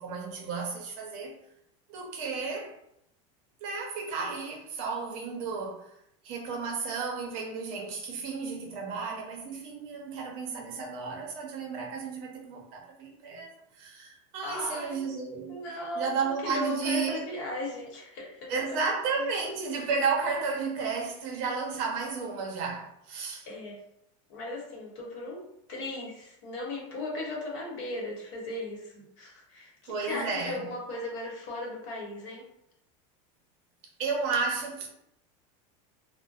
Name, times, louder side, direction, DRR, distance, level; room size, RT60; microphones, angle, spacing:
voice 1, 0.0-1.4 1.9-2.7 3.6-5.9 6.2-13.5 13.8-15.6 15.9-17.2 18.5-23.5 29.9-30.6 34.0-34.9, right 5 dB, 50° right, 0.6 m, -32 dB
voice 2, 14.4-15.0 15.5-18.8 19.2-19.3 23.4-23.8 24.3-25.4 25.7-32.5, left 2 dB, 65° left, 0.9 m, -37 dB
2.6 x 2.0 x 2.3 m
supercardioid pair, 155°, 17 cm